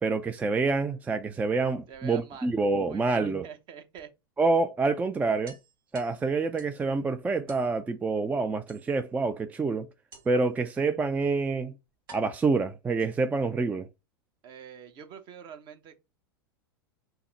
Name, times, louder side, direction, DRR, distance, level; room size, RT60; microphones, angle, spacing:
voice 1, 0.0-3.5 4.4-5.6 5.9-9.9 10.3-11.7 12.1-13.9, right 3 dB, 10° right, 0.4 m, -27 dB
sound 1, 1.4-2.5 4.0-4.1 4.5-4.6 4.9-5.0 5.5-6.9 7.5-7.7 8.7-9.2 10.1-10.5 11.4-11.5 12.1-13.4, right 4 dB, 70° right, 1.9 m, -53 dB
voice 2, 1.9-2.6 2.9-4.1 14.4-16.0, right 7 dB, 40° right, 0.9 m, -46 dB
5.6 x 2.1 x 4.0 m
hypercardioid pair, 105°, 12 cm